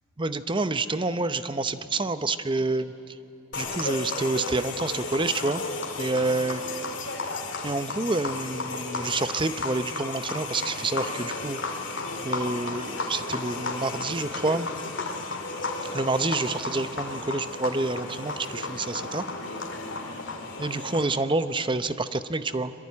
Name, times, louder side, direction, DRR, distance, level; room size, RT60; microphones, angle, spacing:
voice 1, 0.2-3.1 3.6-5.6 6.0-6.6 7.6-11.6 12.2-14.7 15.9-19.2 20.6-22.7, right 3 dB, 25° right, 12 dB, 0.7 m, -28 dB
sound 1, 3.5-21.0, left 3 dB, 60° left, 2.8 m, -33 dB
sound 2, 13.4-14.0 14.2-15.3, left 1 dB, 10° left, 1.6 m, -46 dB
25.5 x 22.5 x 9.6 m, 2.8 s
head